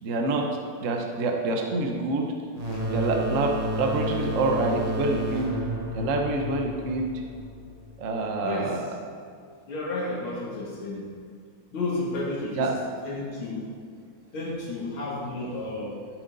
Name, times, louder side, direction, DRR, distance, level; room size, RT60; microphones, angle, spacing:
voice 1, 0.0-0.5 0.8-2.3 2.9-5.5 5.9-7.1 8.0-8.9 12.5-12.7, right 2 dB, 50° right, 2 dB, 0.9 m, -26 dB
sound 1, 2.6-8.0, right 1 dB, 75° right, 0.3 m, -31 dB
voice 2, 8.4-8.8 9.7-11.1 11.7-12.8 13.0-13.7 14.3-16.0, left 2 dB, 70° left, -5 dB, 3.0 m, -32 dB
12.5 x 7.9 x 3.9 m, 2.2 s
omnidirectional pair, 2.4 m